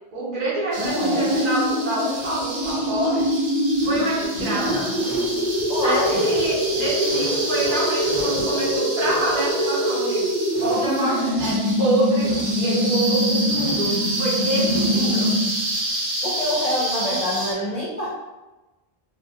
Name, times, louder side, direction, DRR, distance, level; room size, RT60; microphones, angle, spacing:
voice 1, 0.1-3.2 3.8-4.9 5.8-10.2 10.6-15.3, right 1 dB, 55° right, -8 dB, 1.2 m, -26 dB
sound 1, 0.7-17.5, right 1 dB, 75° right, 0.9 m, -29 dB
voice 2, 0.8-1.4 4.4-5.0 5.7-6.2 14.9-15.3 16.2-18.1, left 1 dB, 50° left, -6 dB, 0.5 m, -26 dB
sound 2, 0.8-15.7, equal, 25° right, 1.3 m, -24 dB
2.9 x 2.7 x 2.4 m, 1.1 s
omnidirectional pair, 1.0 m